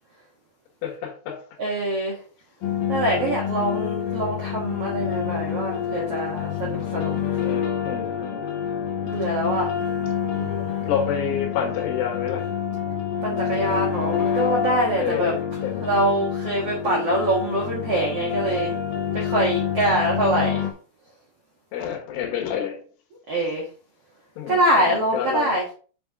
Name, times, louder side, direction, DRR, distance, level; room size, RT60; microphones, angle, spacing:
voice 1, 0.8-1.4 3.2-3.4 7.4-8.5 10.0-10.3 10.8-12.5 15.0-15.9 21.7-22.8 24.4-25.6, left 8 dB, 85° left, 4.0 m, -29 dB
voice 2, 1.6-2.2 2.9-7.1 9.1-9.7 10.3-10.8 13.2-15.3 15.8-18.7 19.1-20.6 23.3-23.6 24.5-25.6, right 1 dB, 70° right, 1.4 m, -24 dB
sound 1, 2.6-20.7, left 8 dB, 70° left, 2.4 m, -27 dB
7.4 x 5.6 x 3.6 m
omnidirectional pair, 5.4 m